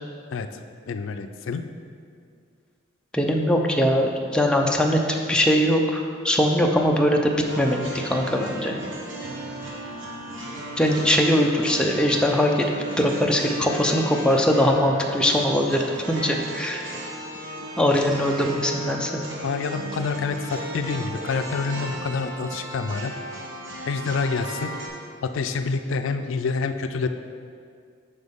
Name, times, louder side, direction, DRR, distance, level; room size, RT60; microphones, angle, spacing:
voice 1, 0.3-0.6 0.9-1.6 19.4-23.1 23.9-24.7 25.2-27.1, left 4 dB, 80° left, 8 dB, 0.4 m, -27 dB
voice 2, 3.1-5.0 5.3-8.7 10.8-12.7 13.0-16.8 17.8-19.1, equal, 5° left, 1 dB, 0.4 m, -21 dB
sound 1, 7.4-24.9, right 1 dB, 75° right, 1.0 m, -35 dB
7.8 x 5.4 x 3.6 m, 2.2 s
head